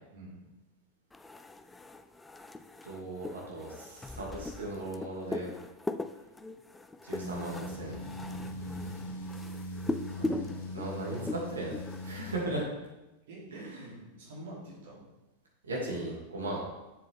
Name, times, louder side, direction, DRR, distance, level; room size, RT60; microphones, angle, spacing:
sound 1, 1.1-12.4, left 2 dB, 10° left, 0.4 m, -40 dB
voice 1, 2.8-5.5 7.0-8.0 10.1-12.7 13.5-13.9 15.6-16.6, right 2 dB, 70° right, -3 dB, 2.6 m, -37 dB
sound 2, 7.1-12.5, left 1 dB, 65° left, 1.6 m, -40 dB
voice 2, 8.7-9.4 13.3-15.0, right 1 dB, 55° right, -5 dB, 3.2 m, -47 dB
7.8 x 7.5 x 3.6 m, 1.0 s
figure-of-eight pair, 90°, 0 cm